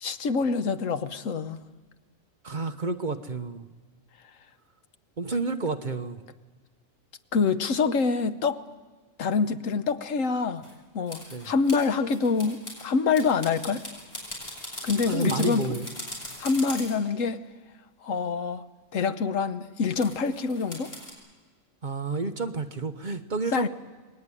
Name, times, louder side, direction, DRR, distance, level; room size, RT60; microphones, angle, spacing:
voice 1, 0.0-1.6 7.3-8.6 9.2-10.6 10.9-13.8 14.8-15.8 16.4-17.4 18.0-18.6 18.9-20.9 23.5-23.7, left 5 dB, 70° left, 11 dB, 1.3 m, -26 dB
voice 2, 2.4-3.6 5.2-6.2 11.3-11.5 15.1-15.9 21.8-23.7, right 3 dB, 40° right, 7 dB, 1.1 m, -30 dB
sound 1, 10.6-10.7 11.1-12.9 13.1-17.0 20.0-21.1, left 1 dB, 45° left, 6.8 m, -40 dB
26.5 x 20.5 x 9.9 m, 1.4 s
omnidirectional pair, 1.4 m